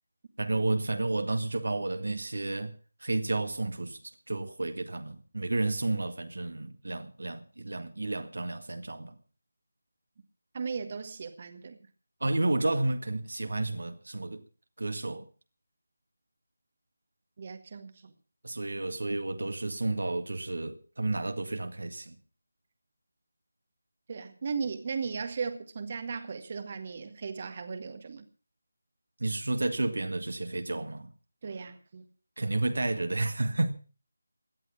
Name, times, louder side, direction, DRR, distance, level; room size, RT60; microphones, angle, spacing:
voice 1, 0.4-2.7 3.0-4.0 4.3-9.2 12.2-14.4 14.8-15.3 18.4-22.2 29.2-31.1 32.4-33.7, right 2 dB, 60° right, 1.8 m, -31 dB
voice 2, 10.5-11.8 17.4-17.9 24.1-28.2 31.4-32.0, right 5 dB, 35° right, 1.8 m, -36 dB
17.5 x 12.0 x 5.9 m
figure-of-eight pair, 160°, 0 cm